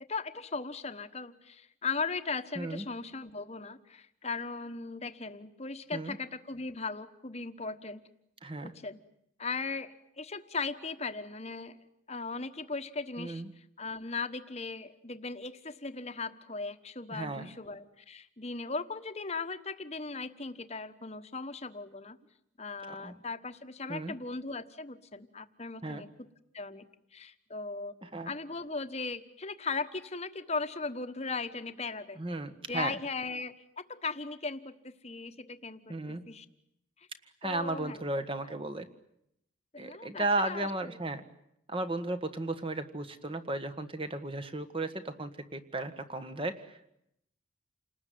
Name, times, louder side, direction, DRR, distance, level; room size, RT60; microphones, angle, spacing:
voice 1, 0.1-8.0 8.6-9.0 9.4-11.8 12.1-22.2 22.6-26.3 26.5-26.9 27.1-27.9 28.2-32.2 32.7-36.5 37.0-37.1 37.4-38.0 39.7-41.0, left 4 dB, 30° left, 9 dB, 1.3 m, -38 dB
voice 2, 2.5-2.9 5.9-6.2 8.4-8.7 13.2-13.5 17.1-17.5 22.9-23.2 23.9-24.1 25.8-26.0 28.0-28.3 32.2-32.9 35.9-36.2 37.4-38.9 39.8-41.2 41.7-46.9, right 2 dB, 25° right, 10 dB, 1.6 m, -35 dB
29.0 x 19.5 x 9.5 m, 0.79 s
head